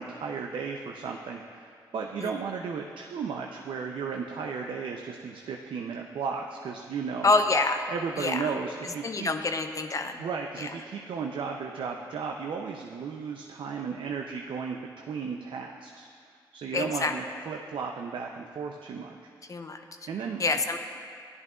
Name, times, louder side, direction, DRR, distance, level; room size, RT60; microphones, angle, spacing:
voice 1, 0.0-7.3 7.9-9.3 10.2-16.1 16.5-19.3 20.1-20.6, right 5 dB, 75° right, 1 dB, 0.5 m, -35 dB
voice 2, 7.2-7.8 8.2-8.5 9.0-10.2 10.6-10.7 16.7-17.1 19.5-19.8 20.4-20.8, left 3 dB, 40° left, 6 dB, 0.7 m, -26 dB
13.5 x 10.5 x 2.4 m, 2.2 s
cardioid pair, 60°, 9 cm